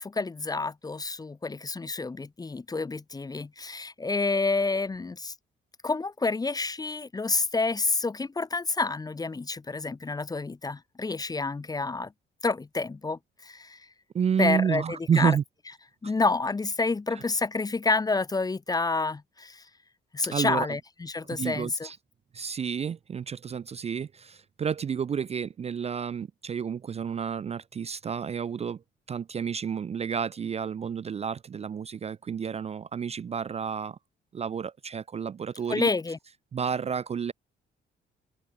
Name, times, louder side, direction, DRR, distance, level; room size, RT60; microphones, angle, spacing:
voice 1, 0.0-5.3 5.8-12.1 12.4-13.8 14.4-15.4 16.0-19.6 20.1-21.9 35.7-36.2, left 3 dB, 20° left, 0.6 m, -29 dB
voice 2, 14.1-15.4 17.1-17.2 20.3-20.7 21.4-22.0 22.3-28.8 29.1-34.0 34.3-35.9 36.5-37.3, right 7 dB, 30° right, 0.4 m, -30 dB
cardioid pair, 90°, 20 cm